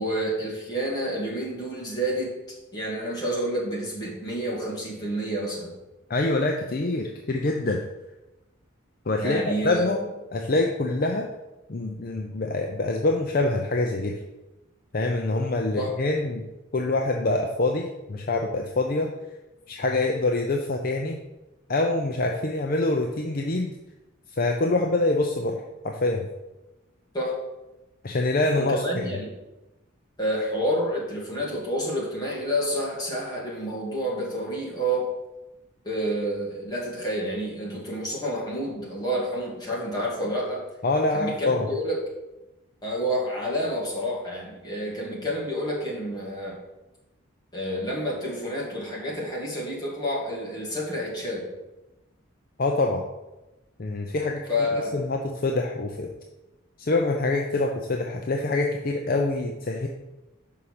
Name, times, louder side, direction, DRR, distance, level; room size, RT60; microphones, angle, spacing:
voice 1, 0.0-2.3 2.7-5.7 9.2-10.0 15.8-15.9 27.1-27.3 28.6-29.3 30.2-35.1 35.8-40.6 41.1-42.0 42.8-46.6 47.5-51.4 54.5-54.9, equal, 20° left, -5 dB, 2.2 m, -29 dB
voice 2, 6.1-7.8 9.1-10.0 10.3-11.3 11.7-14.2 14.9-16.4 16.7-19.1 19.7-21.2 21.7-23.8 24.3-26.3 28.0-28.8 40.8-41.7 52.6-53.0 53.8-54.5 54.9-56.1 56.8-59.9, left 2 dB, 45° left, 2 dB, 0.6 m, -25 dB
5.7 x 5.5 x 6.5 m, 1.0 s
head